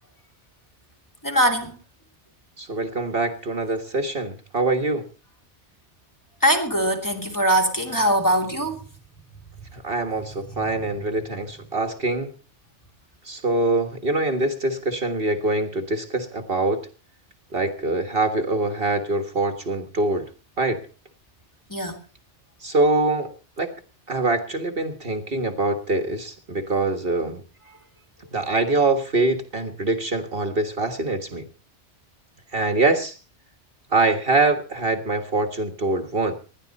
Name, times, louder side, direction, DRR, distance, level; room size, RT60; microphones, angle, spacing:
voice 1, 1.2-1.8 6.4-8.8 21.7-22.0, right 1 dB, 15° left, 2.9 m, -21 dB
voice 2, 2.6-5.0 9.7-12.3 13.3-16.9 17.5-20.3 20.6-20.8 22.6-23.3 23.6-23.7 24.1-27.4 28.3-31.5 32.5-33.2 33.9-36.3, right 2 dB, 55° right, 1.8 m, -24 dB
20.0 x 13.0 x 4.2 m
omnidirectional pair, 1.2 m